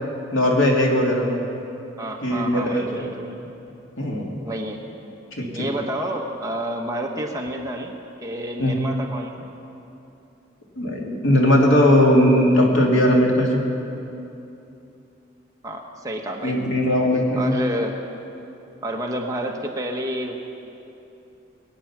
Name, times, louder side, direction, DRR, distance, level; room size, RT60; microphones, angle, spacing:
voice 1, 0.3-1.4 2.2-3.1 4.0-4.3 8.6-8.7 10.8-13.6 16.4-17.5, left 1 dB, 85° left, -1 dB, 2.5 m, -18 dB
voice 2, 2.0-3.4 4.4-4.8 5.5-7.9 8.2-9.5 15.6-16.6 17.4-18.0 18.8-20.4, right 1 dB, 15° right, 1 dB, 1.1 m, -29 dB
22.0 x 9.2 x 6.1 m, 2.8 s
head